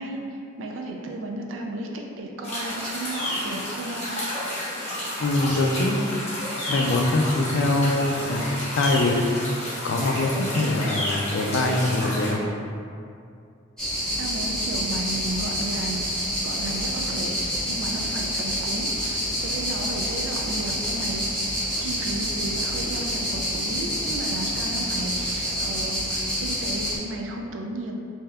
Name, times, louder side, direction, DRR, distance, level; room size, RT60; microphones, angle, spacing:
voice 1, 0.0-4.1 14.2-27.9, right 1 dB, 75° right, 1 dB, 0.4 m, -33 dB
sound 1, 2.4-12.3, left 1 dB, 35° left, 0.9 m, -31 dB
voice 2, 5.2-6.0 6.7-9.2 9.8-12.4, left 2 dB, 65° left, 2 dB, 0.3 m, -23 dB
sound 2, 13.8-27.0, equal, 5° left, 1.0 m, -28 dB
3.3 x 2.7 x 2.2 m, 2.4 s
head